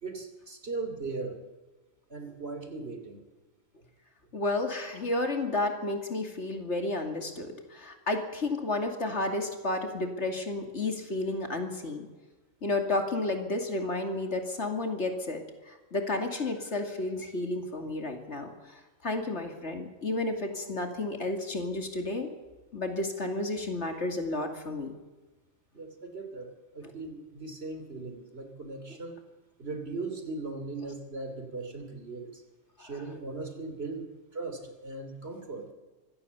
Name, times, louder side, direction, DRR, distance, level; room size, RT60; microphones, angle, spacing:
voice 1, 0.0-1.4 2.1-3.2 25.7-29.1 29.6-32.4 32.8-34.1 34.3-35.7, right 3 dB, 50° right, 7 dB, 3.2 m, -38 dB
voice 2, 4.3-12.1 12.6-18.5 19.0-22.3 22.7-24.9 32.8-32.9, left 2 dB, 60° left, 5 dB, 2.8 m, -31 dB
24.5 x 16.5 x 7.1 m, 1.2 s
omnidirectional pair, 1.3 m